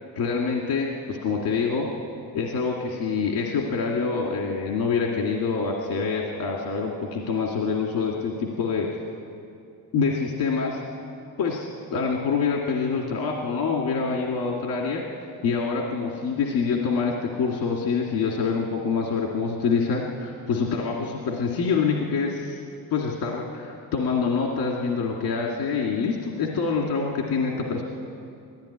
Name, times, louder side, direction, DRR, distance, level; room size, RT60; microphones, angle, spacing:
voice 1, 0.1-1.9 2.3-9.0 9.9-10.8 11.4-15.0 15.4-22.6 22.9-27.8, left 5 dB, 80° left, 0 dB, 2.3 m, -26 dB
19.0 x 15.0 x 9.9 m, 2.5 s
cardioid pair, 165°, 36 cm